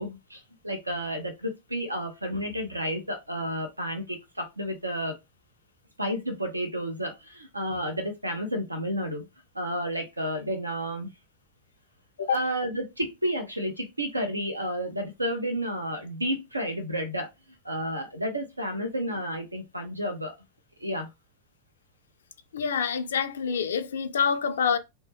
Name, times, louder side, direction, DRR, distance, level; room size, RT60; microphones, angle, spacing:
voice 1, 0.0-5.1 6.0-9.2 9.5-11.1 12.2-17.3 17.6-20.3 20.8-21.1, equal, 85° right, 0.5 m, -31 dB
voice 2, 22.5-24.8, left 6 dB, 65° left, 0.3 m, -26 dB
2.1 x 2.0 x 3.1 m
figure-of-eight pair, 90°, 0 cm